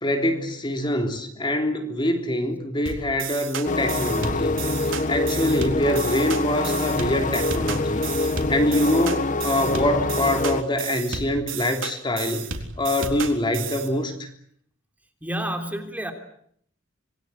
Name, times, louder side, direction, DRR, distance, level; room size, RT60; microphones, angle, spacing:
voice 1, 0.0-12.5 12.8-14.3, left 1 dB, 25° left, 5 dB, 3.4 m, -25 dB
sound 1, 2.9-13.9, right 6 dB, 75° right, 4.0 m, -33 dB
sound 2, 3.7-10.6, left 2 dB, 40° left, 1.0 m, -25 dB
voice 2, 15.2-16.1, right 1 dB, 10° right, 4 dB, 3.3 m, -29 dB
26.5 x 22.5 x 8.5 m, 0.66 s
head